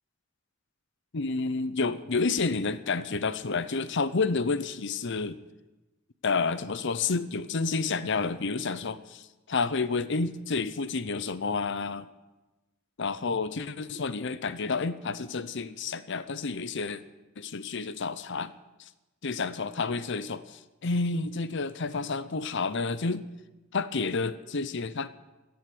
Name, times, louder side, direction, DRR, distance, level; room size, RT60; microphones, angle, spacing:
voice 1, 1.1-5.4 6.2-12.1 13.0-17.0 17.4-18.5 19.2-23.3 23.7-25.1, left 4 dB, 60° left, 14 dB, 0.7 m, -30 dB
15.0 x 8.0 x 9.8 m, 1.1 s
head